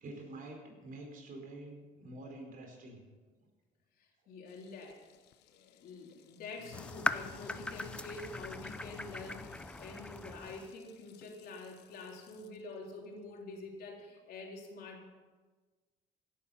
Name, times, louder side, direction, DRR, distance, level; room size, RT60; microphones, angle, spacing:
voice 1, 0.0-3.0, right 2 dB, 55° right, 2 dB, 4.7 m, -47 dB
voice 2, 4.0-5.0 5.4-15.1, left 3 dB, 65° left, 0 dB, 3.7 m, -47 dB
Sink (filling or washing), 4.5-12.6, left 10 dB, 85° left, 0.9 m, -56 dB
sound 1, 6.7-10.7, left 1 dB, 5° left, 0.6 m, -39 dB
17.0 x 11.5 x 5.8 m, 1.3 s
cardioid pair, 110°, 17 cm